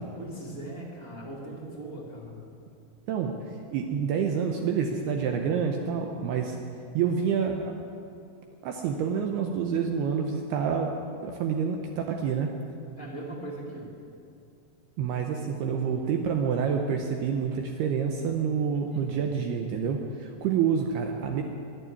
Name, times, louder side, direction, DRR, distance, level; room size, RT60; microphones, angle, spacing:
voice 1, 0.2-2.4 13.0-13.9 18.9-19.4, right 1 dB, 30° right, -4 dB, 1.6 m, -39 dB
voice 2, 3.7-6.6 6.9-7.7 8.6-10.9 11.2-12.5 15.0-21.4, right 7 dB, 80° right, 3 dB, 2.4 m, -28 dB
12.0 x 11.0 x 9.7 m, 2.5 s
omnidirectional pair, 5.5 m